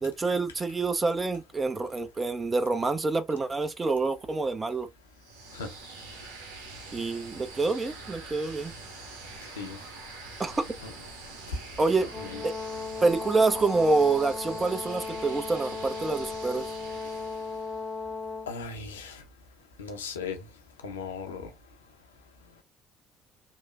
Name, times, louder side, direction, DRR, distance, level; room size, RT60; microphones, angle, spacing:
voice 1, 0.0-4.9 6.9-8.7 10.4-10.6 11.8-12.1 12.4-12.5 13.0-16.7, right 3 dB, 25° right, 0.6 m, -27 dB
sound 1, 5.1-17.9, right 3 dB, 75° right, 0.7 m, -45 dB
Brass instrument, 12.1-18.5, left 4 dB, 15° left, 0.7 m, -36 dB
voice 2, 18.5-19.2 19.8-20.4 20.8-21.5, left 5 dB, 85° left, 0.6 m, -37 dB
3.0 x 2.1 x 2.4 m
figure-of-eight pair, 55°, 0 cm